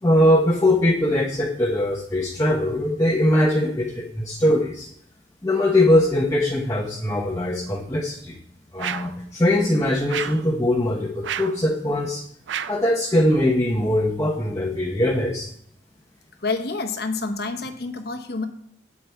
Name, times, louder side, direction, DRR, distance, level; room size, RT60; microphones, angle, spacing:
voice 1, 0.0-4.9 5.4-8.4 8.7-12.2 12.7-15.5, left 1 dB, 15° left, -1 dB, 0.8 m, -21 dB
sound 1, 8.8-9.2 10.1-10.5 11.2-11.6 12.5-12.9, right 9 dB, 70° right, 0.4 m, -30 dB
voice 2, 16.4-18.5, left 3 dB, 55° left, 7 dB, 1.0 m, -28 dB
8.5 x 8.0 x 4.4 m, 0.69 s
head